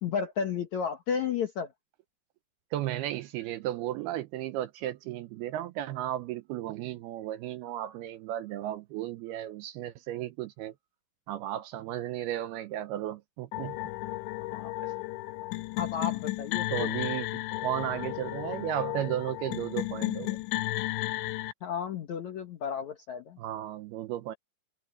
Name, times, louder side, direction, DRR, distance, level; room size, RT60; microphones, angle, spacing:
voice 1, 0.0-1.7 14.5-14.7 15.8-16.9 21.6-23.4, left 7 dB, 70° left, 1.8 m, -33 dB
voice 2, 2.7-10.7 11.3-13.8 14.8-14.9 16.7-20.4 23.4-24.3, right 13 dB, 75° right, 2.4 m, -34 dB
sound 1, 13.5-21.5, left 18 dB, 90° left, 2.9 m, -33 dB
omnidirectional pair, 5.1 m